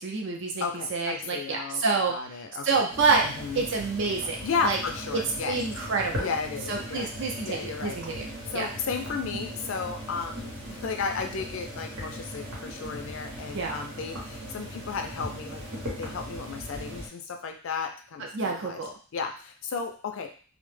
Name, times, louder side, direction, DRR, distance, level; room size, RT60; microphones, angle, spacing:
voice 1, 0.0-0.6 0.9-2.1 2.6-3.2 3.5-4.8 5.1-5.2 5.5-6.3 6.7-8.3 8.5-8.7 13.5-13.8 18.3-18.9, right 4 dB, 55° right, 1 dB, 0.5 m, -27 dB
voice 2, 0.6-2.8 3.2-3.7 4.4-5.6 6.2-7.1 7.4-8.0 8.5-15.6 16.0-18.8 19.1-20.3, left 5 dB, 60° left, 5 dB, 0.4 m, -34 dB
sound 1, 2.9-17.1, equal, 80° right, 0.9 m, -39 dB
2.1 x 2.0 x 3.1 m, 0.40 s
head